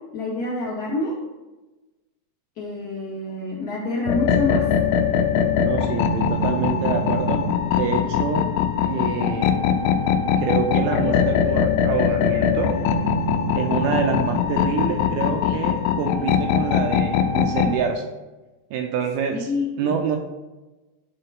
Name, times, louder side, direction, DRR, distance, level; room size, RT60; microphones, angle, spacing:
voice 1, 0.1-1.1 2.6-4.7 15.4-15.6 19.3-19.9, left 2 dB, 45° left, -6 dB, 1.2 m, -27 dB
sound 1, 4.1-17.8, left 7 dB, 90° left, 2.8 m, -21 dB
voice 2, 5.6-7.5 7.7-8.5 8.8-9.6 10.4-12.7 13.5-18.1 18.7-19.5 19.8-20.2, right 6 dB, 80° right, 4 dB, 2.3 m, -26 dB
11.0 x 4.4 x 3.6 m, 1.1 s
omnidirectional pair, 4.9 m